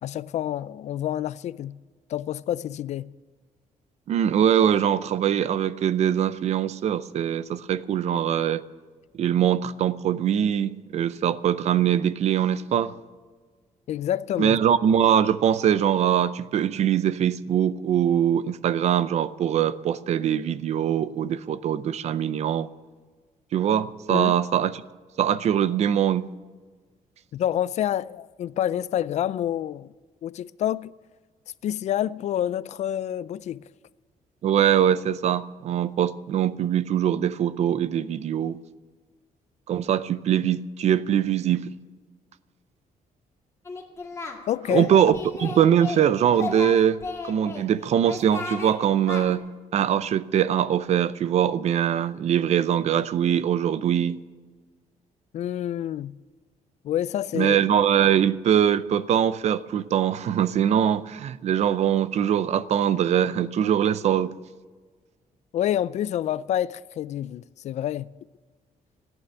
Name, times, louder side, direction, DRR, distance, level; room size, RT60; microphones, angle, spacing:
voice 1, 0.0-1.8 2.1-3.1 13.9-14.6 24.1-24.4 27.3-29.9 30.2-30.9 31.6-33.6 44.5-44.9 55.3-56.2 56.8-57.6 65.5-68.1, left 11 dB, 55° left, 0.4 m, -28 dB
voice 2, 4.1-8.6 9.1-12.9 14.4-22.7 23.5-24.8 25.2-26.3 34.4-38.6 39.7-41.7 44.7-49.4 49.7-54.2 57.3-64.3, right 9 dB, 50° right, 0.5 m, -22 dB
Singing, 43.6-44.4 44.7-46.0 46.3-47.6 48.0-48.7 49.1-49.2, left 4 dB, 20° left, 2.1 m, -33 dB
14.5 x 9.1 x 8.6 m
cardioid pair, 170°, 14 cm